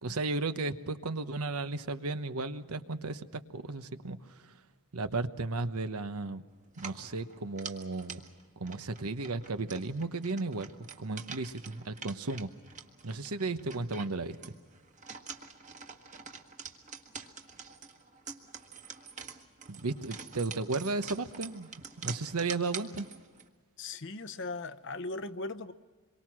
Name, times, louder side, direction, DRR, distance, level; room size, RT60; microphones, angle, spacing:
voice 1, 0.0-4.5 4.9-6.4 6.8-8.2 8.6-10.7 11.0-12.5 13.0-14.5 19.7-21.7 22.0-23.1, right 3 dB, 80° right, 10 dB, 1.1 m, -34 dB
sound 1, 6.7-23.5, right 6 dB, 35° right, 1.5 m, -46 dB
voice 2, 23.8-25.7, left 3 dB, 55° left, 12 dB, 0.9 m, -38 dB
27.0 x 23.5 x 6.1 m, 1.5 s
head